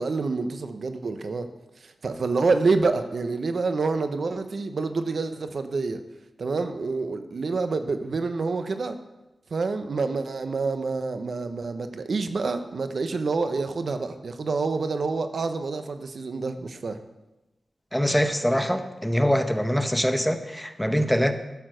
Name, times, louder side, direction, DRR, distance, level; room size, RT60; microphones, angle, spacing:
voice 1, 0.0-1.5 1.8-6.0 6.4-9.0 9.5-17.0, right 4 dB, 65° right, 9 dB, 0.8 m, -27 dB
voice 2, 17.9-21.3, equal, 5° left, 8 dB, 0.8 m, -23 dB
12.0 x 6.9 x 6.3 m, 1.0 s
wide cardioid pair, 105°, 0 cm